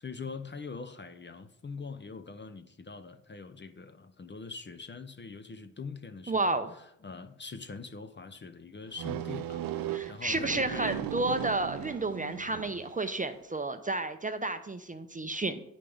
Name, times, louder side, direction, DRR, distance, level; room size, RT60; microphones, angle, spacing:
voice 1, 0.0-11.1, left 4 dB, 30° left, 9 dB, 0.7 m, -43 dB
voice 2, 6.3-6.7 9.9-15.6, right 2 dB, 20° right, 9 dB, 0.6 m, -31 dB
sound 1, 9.0-13.0, right 12 dB, 65° right, 0.5 m, -37 dB
8.5 x 5.1 x 3.5 m, 0.77 s
supercardioid pair, 40°, 38 cm